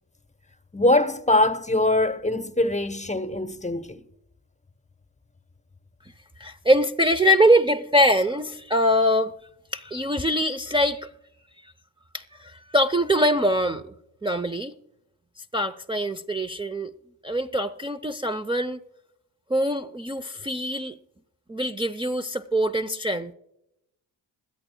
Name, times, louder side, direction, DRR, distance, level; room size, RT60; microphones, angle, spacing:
voice 1, 0.7-4.0, left 2 dB, 15° left, 0.9 m, -22 dB
voice 2, 6.4-9.3 9.7-11.1 12.1-13.9 14.2-14.7 15.4-16.9 17.2-18.8 19.5-21.0 21.5-23.3, equal, 10° right, 0.6 m, -23 dB
21.0 x 13.0 x 2.2 m
cardioid pair, 60°, 43 cm